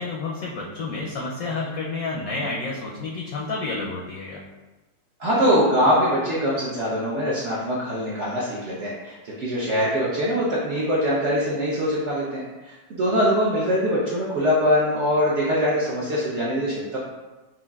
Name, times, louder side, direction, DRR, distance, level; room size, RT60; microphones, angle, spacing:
voice 1, 0.0-4.4, left 3 dB, 70° left, -3 dB, 0.8 m, -30 dB
voice 2, 5.2-17.0, equal, 65° right, -6 dB, 0.7 m, -23 dB
5.5 x 2.4 x 2.3 m, 1.2 s
omnidirectional pair, 1.9 m